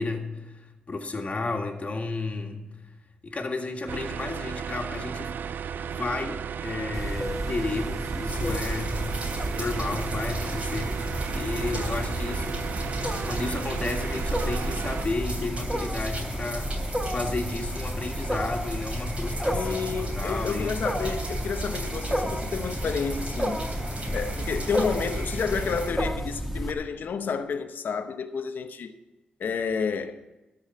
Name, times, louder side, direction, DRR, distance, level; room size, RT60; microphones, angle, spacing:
voice 1, 0.0-3.0 3.2-5.4 5.9-9.0 9.5-11.0 11.3-13.0 13.2-16.7 17.1-20.7, left 3 dB, 45° left, 1.8 m, -32 dB
sound 1, 3.9-15.0, right 7 dB, 75° right, 0.4 m, -34 dB
Wild animals, 6.9-26.7, equal, 5° right, 1.2 m, -32 dB
sound 2, 8.3-25.9, right 2 dB, 40° right, 3.2 m, -38 dB
voice 2, 19.5-23.6 24.1-28.9 29.4-30.2, left 5 dB, 75° left, 0.7 m, -30 dB
13.5 x 5.0 x 8.4 m
cardioid pair, 65°, 3 cm